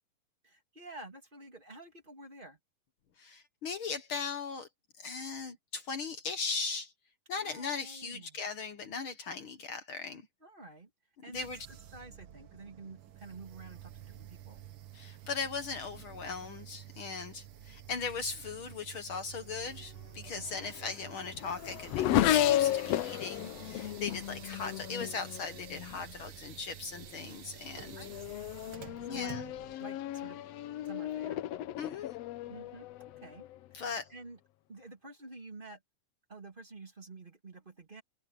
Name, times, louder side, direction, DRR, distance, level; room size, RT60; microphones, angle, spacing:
voice 1, 0.4-2.6 7.3-8.4 10.4-10.9 11.2-11.4 11.7-14.6 20.3-20.7 27.9-29.4 29.8-30.4 30.8-31.4 32.5-32.9 33.2-34.4 34.7-35.8 36.3-38.0, right 3 dB, 15° right, 2.4 m, -50 dB
voice 2, 3.2-4.7 5.0-6.9 7.3-10.3 11.3-11.7 14.9-28.0 29.1-29.5 31.8-32.1 33.7-34.1, left 5 dB, 60° left, 1.4 m, -38 dB
sound 1, 11.3-29.8, right 11 dB, 65° right, 1.4 m, -50 dB
Race car auto racing / Accelerating revving vroom, 20.3-26.1 27.0-27.3 27.8-33.7, left 12 dB, 80° left, 1.4 m, -33 dB
omnidirectional pair, 3.8 m